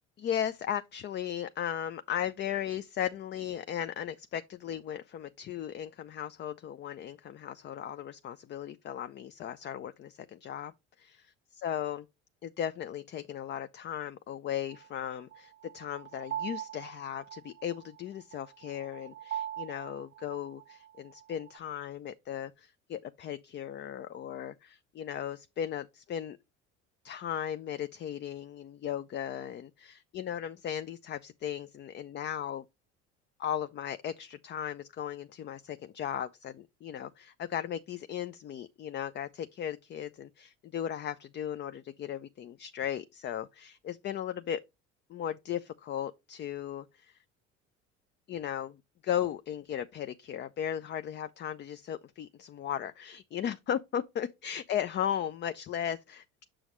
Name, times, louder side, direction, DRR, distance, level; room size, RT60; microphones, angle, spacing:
voice 1, 0.2-12.0 12.4-26.4 27.0-32.7 33.4-44.6 45.1-47.2 48.3-56.4, left 9 dB, 35° left, 0.4 m, -36 dB
sound 1, 14.7-21.6, right 11 dB, 35° right, 0.6 m, -42 dB
6.3 x 6.1 x 3.0 m
hypercardioid pair, 80°, 34 cm